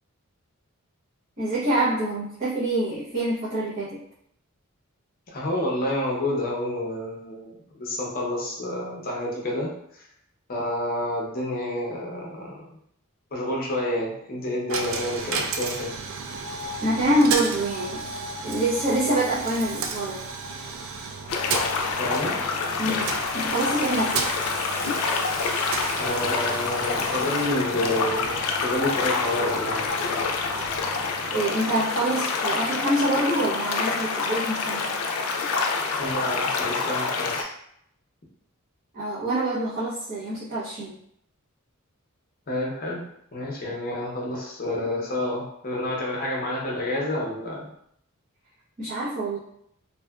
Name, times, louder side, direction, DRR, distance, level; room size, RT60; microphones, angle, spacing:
voice 1, 1.4-4.0 16.8-18.0 18.4-20.2 22.8-23.1 23.3-24.3 31.3-34.9 38.9-41.0 48.8-49.4, right 1 dB, 35° right, -11 dB, 0.7 m, -25 dB
voice 2, 5.3-9.7 10.5-12.6 13.3-15.9 22.0-22.4 26.0-29.9 36.0-37.5 42.5-43.0 43.3-47.7, left 1 dB, 40° left, -3 dB, 0.6 m, -29 dB
Coin (dropping), 14.7-31.6, right 4 dB, 65° right, 0.3 m, -34 dB
sound 1, 21.3-37.4, left 4 dB, 85° left, 0.3 m, -27 dB
2.7 x 2.3 x 2.2 m, 0.71 s
head